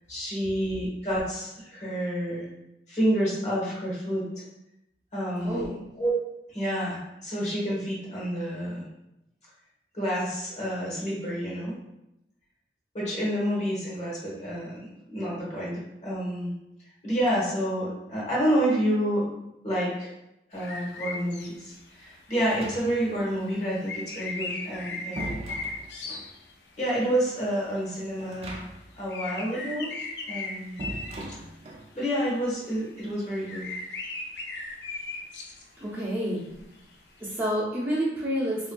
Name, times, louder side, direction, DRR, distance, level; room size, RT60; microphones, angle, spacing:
voice 1, 0.1-2.5 2.9-4.4 5.1-5.7 6.0-6.1 6.5-8.8 9.9-11.7 12.9-16.5 17.0-19.3 19.6-20.1 20.5-25.5 26.8-28.6 29.0-30.0 30.3-30.8 31.9-33.6, equal, 40° left, -6 dB, 1.1 m, -29 dB
sound 1, 20.6-21.5 21.8-21.9 22.3-22.4 22.8-22.9 23.2-26.8 27.2-27.4 27.8-27.9 28.2-28.3 29.1-31.4 32.1-32.3 32.7-32.8 33.0-33.1 33.4-36.0 36.2-37.4, left 3 dB, 80° left, 0.5 m, -37 dB
sound 2, 22.4-23.2 24.5-26.3 28.2-29.0 29.3-29.4 30.8-31.9, right 2 dB, 35° right, 0.4 m, -40 dB
voice 2, 35.8-36.4 37.2-38.7, equal, 15° right, -9 dB, 0.7 m, -28 dB
3.5 x 2.5 x 2.2 m, 0.88 s
head